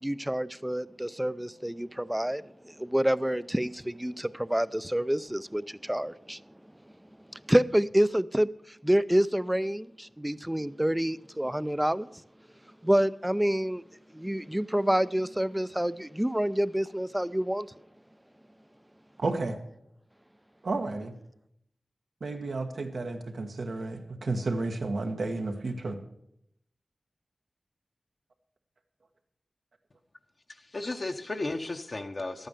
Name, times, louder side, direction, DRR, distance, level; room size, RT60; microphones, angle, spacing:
voice 1, 0.0-6.4 7.3-12.1 12.8-13.8 14.1-17.7, equal, 10° right, 0.4 m, -28 dB
voice 2, 19.2-19.6 20.6-21.1 22.2-26.0, right 3 dB, 85° right, 1.5 m, -32 dB
voice 3, 30.5-32.5, left 2 dB, 50° left, 0.8 m, -34 dB
12.5 x 9.1 x 6.6 m
wide cardioid pair, 75°, 0 cm